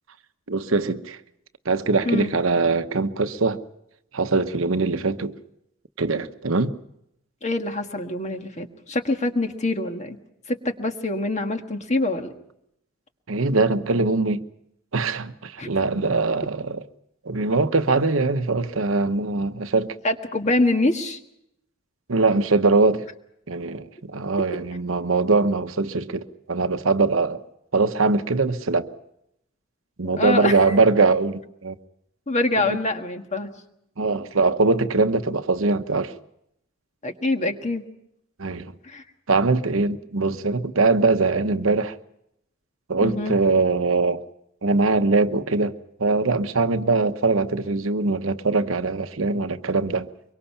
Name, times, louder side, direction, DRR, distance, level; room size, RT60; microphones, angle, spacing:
voice 1, 0.5-1.2 1.6-3.6 4.1-5.4 6.0-6.7 13.3-14.4 14.9-16.8 17.2-19.9 22.1-23.0 23.5-27.4 27.7-28.9 30.0-31.7 32.6-32.8 34.0-36.1 38.4-38.7 39.3-42.0 42.9-44.2 44.6-45.7 46.0-50.1, right 3 dB, 75° right, 1.0 m, -22 dB
voice 2, 7.4-10.2 10.5-12.3 15.6-15.7 20.0-21.2 30.0-30.6 32.3-33.5 37.0-37.8 38.8-39.0 43.0-43.3, left 2 dB, 35° left, 1.6 m, -25 dB
24.0 x 23.5 x 5.7 m
head